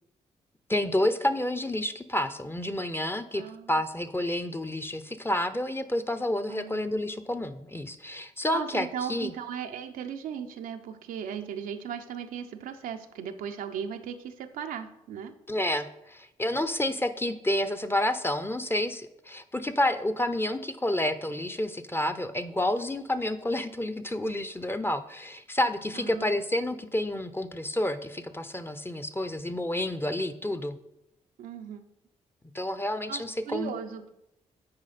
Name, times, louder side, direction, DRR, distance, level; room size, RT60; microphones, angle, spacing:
voice 1, 0.7-3.4 3.7-9.3 15.5-30.8 32.5-33.7, left 1 dB, 15° left, 10 dB, 0.7 m, -29 dB
voice 2, 3.3-3.7 6.5-6.8 8.5-15.3 25.9-26.4 31.4-31.8 33.1-34.1, right 8 dB, 80° right, 6 dB, 0.6 m, -37 dB
8.6 x 4.9 x 4.2 m, 0.86 s
supercardioid pair, 45°, 14 cm